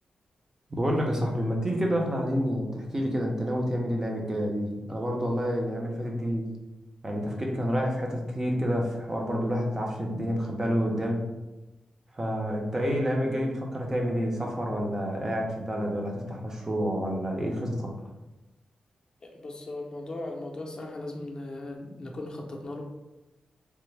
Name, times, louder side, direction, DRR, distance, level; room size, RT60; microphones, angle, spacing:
voice 1, 0.7-6.5 7.0-11.2 12.2-18.0, equal, 20° right, 0 dB, 0.6 m, -28 dB
voice 2, 19.2-22.8, left 2 dB, 35° left, 1 dB, 0.5 m, -38 dB
3.2 x 2.0 x 3.2 m, 1.0 s
wide cardioid pair, 100°, 2 cm